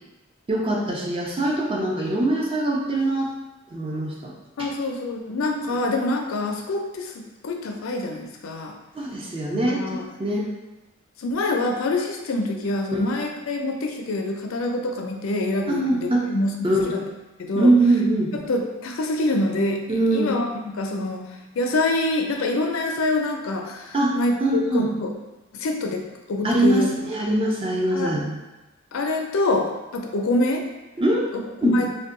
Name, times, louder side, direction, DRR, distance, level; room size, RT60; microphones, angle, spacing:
voice 1, 0.5-3.3 3.7-4.3 4.6-4.7 5.5-5.7 8.9-10.5 12.9-13.0 15.7-16.2 16.6-16.9 17.5-18.3 19.9-20.3 23.9-24.1 24.4-24.9 26.4-28.3 31.0-31.3 31.6-31.8, right 1 dB, 25° right, -2 dB, 0.5 m, -22 dB
voice 2, 4.6-8.7 9.5-10.1 11.2-17.0 17.4-17.7 18.4-20.5 20.8-25.1 25.5-26.9 27.9-28.1 28.9-30.6 31.3-31.9, left 2 dB, 75° left, 2 dB, 0.4 m, -26 dB
2.7 x 2.2 x 3.6 m, 1.1 s
head